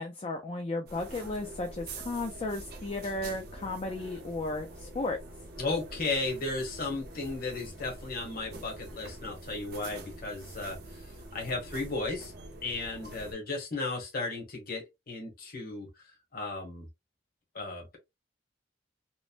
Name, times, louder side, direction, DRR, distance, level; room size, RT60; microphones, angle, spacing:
voice 1, 0.0-5.2, left 2 dB, 30° left, 0.4 m, -34 dB
sound 1, 0.9-13.3, right 2 dB, 55° right, 0.7 m, -45 dB
voice 2, 5.6-12.3 12.6-15.9 16.3-16.9 17.5-18.0, left 3 dB, 50° left, 1.1 m, -35 dB
3.1 x 2.1 x 2.5 m
head